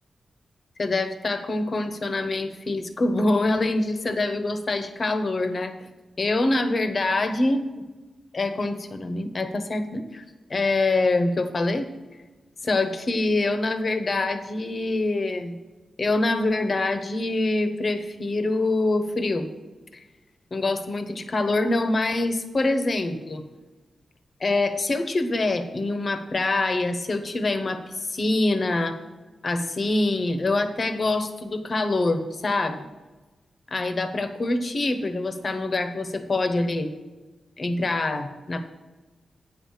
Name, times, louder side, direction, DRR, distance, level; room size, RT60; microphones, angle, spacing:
voice 1, 0.8-5.7 6.2-7.6 8.3-10.2 10.5-11.9 12.6-15.6 16.0-19.5 19.9-20.0 20.5-23.4 24.4-29.0 29.4-32.8 33.7-36.9 37.6-38.6, left 2 dB, 35° left, 8 dB, 1.0 m, -25 dB
9.4 x 5.7 x 7.3 m, 1.2 s
wide cardioid pair, 155°, 0 cm